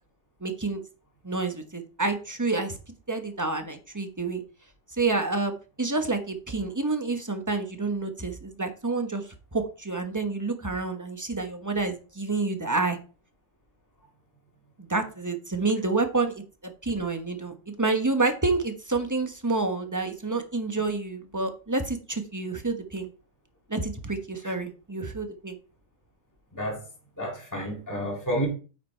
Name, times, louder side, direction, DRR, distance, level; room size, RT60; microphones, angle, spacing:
voice 1, 0.4-0.8 1.2-2.8 3.1-4.4 4.9-9.2 9.5-13.0 14.8-23.1 23.7-25.6, right 3 dB, 15° right, 1.0 m, -28 dB
voice 2, 27.2-28.5, equal, 15° left, 2.3 m, -30 dB
9.0 x 4.9 x 4.4 m
omnidirectional pair, 1.4 m